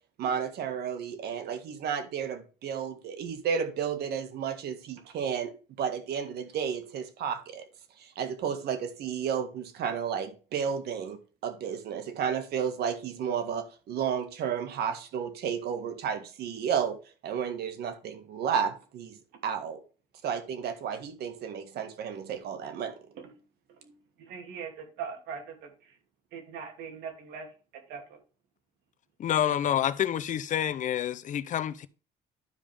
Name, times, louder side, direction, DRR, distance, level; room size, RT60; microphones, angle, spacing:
voice 1, 0.2-7.7 8.0-19.8 20.2-23.0, right 7 dB, 70° right, 1.8 m, -32 dB
voice 2, 23.8-26.0 26.3-27.5 27.9-28.2, right 6 dB, 85° right, 2.7 m, -41 dB
voice 3, 29.2-31.9, left 10 dB, 50° left, 0.6 m, -28 dB
11.5 x 5.1 x 3.5 m
cardioid pair, 110°, 17 cm